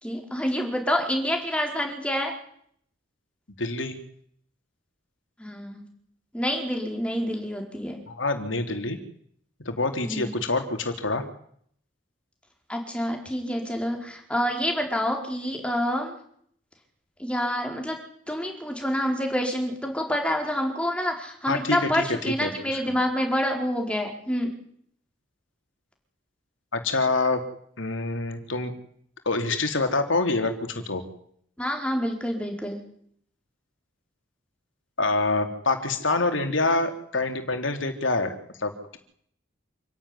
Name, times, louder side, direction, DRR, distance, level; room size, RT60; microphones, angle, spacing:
voice 1, 0.0-2.3 5.4-5.8 6.3-8.0 10.0-10.3 12.7-16.2 17.2-18.0 18.3-24.5 31.6-32.8, equal, 5° left, 2 dB, 4.5 m, -27 dB
voice 2, 3.6-4.0 8.1-9.0 9.6-11.2 21.5-23.0 26.7-27.4 27.8-28.7 29.2-31.0 35.0-38.3 38.6-39.0, left 3 dB, 75° left, 6 dB, 3.3 m, -26 dB
27.5 x 11.5 x 10.0 m, 0.65 s
head